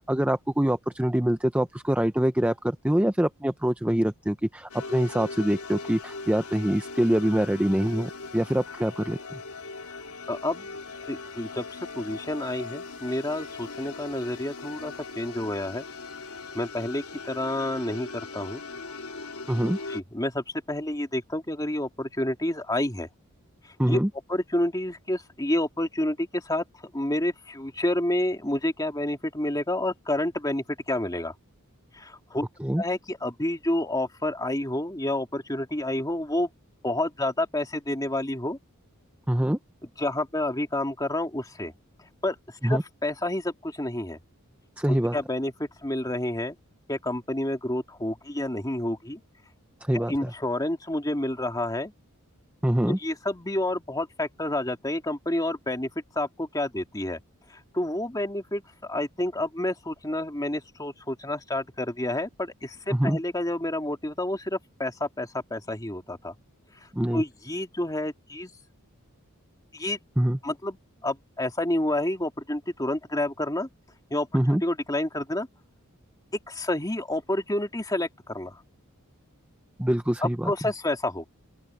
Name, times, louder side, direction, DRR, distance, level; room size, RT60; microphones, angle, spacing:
voice 1, 0.0-9.4 19.5-19.8 23.8-24.1 32.6-32.8 39.3-39.6 42.6-42.8 44.8-45.2 49.8-50.3 52.6-53.0 62.9-63.2 66.9-67.2 70.2-70.4 74.3-74.6 79.8-80.5, right 1 dB, 5° right, 0.6 m, -24 dB
sound 1, 4.7-20.0, left 3 dB, 85° left, 3.5 m, -40 dB
voice 2, 10.3-10.7 11.0-15.9 16.5-18.6 19.9-23.1 23.6-24.0 24.3-26.6 26.9-31.3 31.9-32.5 32.8-36.5 36.8-38.6 40.0-41.7 42.2-44.2 44.9-46.6 46.9-49.2 49.9-51.9 52.9-55.9 56.2-57.2 57.5-66.3 66.8-68.5 69.7-70.0 70.4-70.8 71.0-73.7 74.1-75.5 76.5-78.6 80.2-81.3, left 1 dB, 15° left, 2.6 m, -29 dB
open air
head